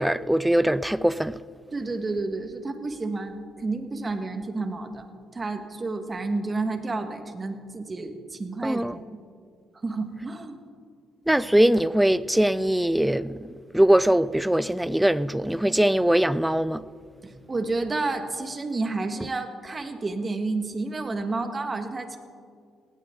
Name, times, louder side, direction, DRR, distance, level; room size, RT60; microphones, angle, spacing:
voice 1, 0.0-1.4 8.6-9.0 11.3-16.8, right 1 dB, 5° right, 0.5 m, -22 dB
voice 2, 1.7-5.1 5.3-9.2 9.8-10.6 17.2-22.2, right 3 dB, 30° right, 1.8 m, -30 dB
18.5 x 18.0 x 3.9 m
cardioid pair, 90°, 0 cm